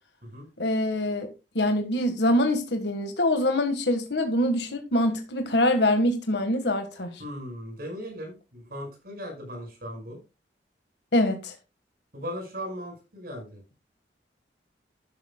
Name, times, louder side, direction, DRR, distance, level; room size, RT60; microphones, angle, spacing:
voice 1, 0.6-1.3 1.5-7.1 11.1-11.5, left 1 dB, 75° left, 1.6 m, -24 dB
voice 2, 7.2-10.2 12.1-13.6, equal, 55° right, 5.4 m, -38 dB
13.0 x 10.5 x 2.3 m
head